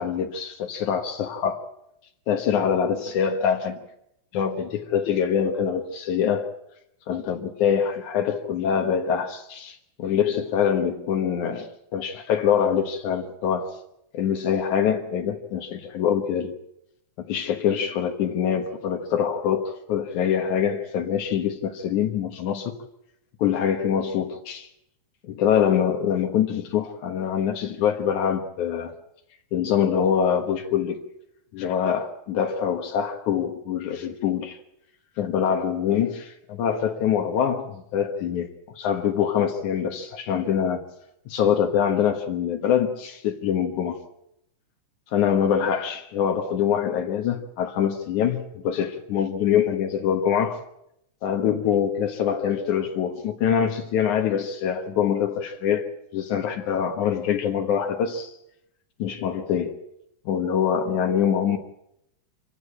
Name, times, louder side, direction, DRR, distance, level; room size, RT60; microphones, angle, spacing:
voice 1, 0.0-1.6 2.3-3.8 4.3-6.5 7.1-13.7 14.1-16.5 17.2-22.7 23.4-24.7 25.2-28.9 29.5-31.0 31.5-34.6 35.2-38.5 38.8-40.8 41.3-44.0 45.1-50.6 51.2-55.9 56.1-58.3 59.0-59.8 60.3-61.6, left 8 dB, 80° left, 2.8 m, -24 dB
26.0 x 15.0 x 8.6 m
omnidirectional pair, 3.4 m